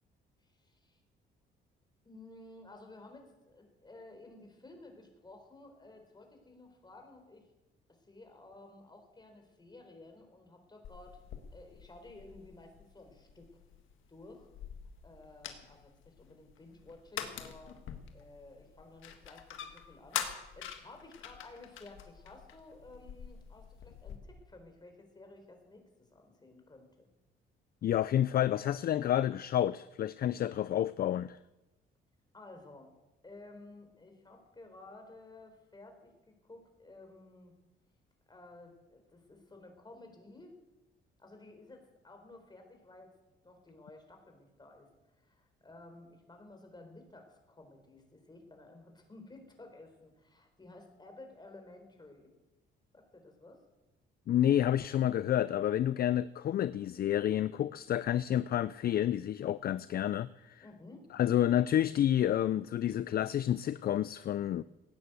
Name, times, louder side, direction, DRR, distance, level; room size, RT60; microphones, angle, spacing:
voice 1, 0.6-1.0 2.0-7.5 7.9-11.2 11.5-13.5 14.1-14.5 15.0-17.8 18.1-20.3 20.5-27.1 32.3-32.9 33.2-37.5 38.3-40.6 41.2-43.1 43.4-44.9 45.2-52.3 52.9-53.6 60.6-61.1, left 2 dB, 20° left, 4 dB, 4.1 m, -54 dB
sound 1, 10.8-24.2, left 9 dB, 80° left, 1.6 m, -45 dB
voice 2, 27.8-31.4 54.3-60.6 61.1-64.6, left 11 dB, 50° left, 16 dB, 0.4 m, -29 dB
17.0 x 9.6 x 7.9 m, 1.0 s
cardioid pair, 90°, 20 cm